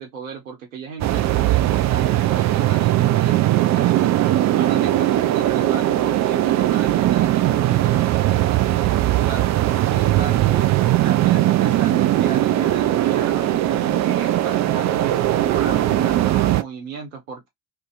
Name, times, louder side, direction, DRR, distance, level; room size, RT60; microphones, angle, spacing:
voice 1, 0.0-9.5 9.8-10.7 11.0-17.5, right 6 dB, 85° right, 1.0 m, -34 dB
sound 1, 1.0-16.6, right 14 dB, 45° right, 0.4 m, -19 dB
2.6 x 2.4 x 2.4 m
hypercardioid pair, 45°, 39 cm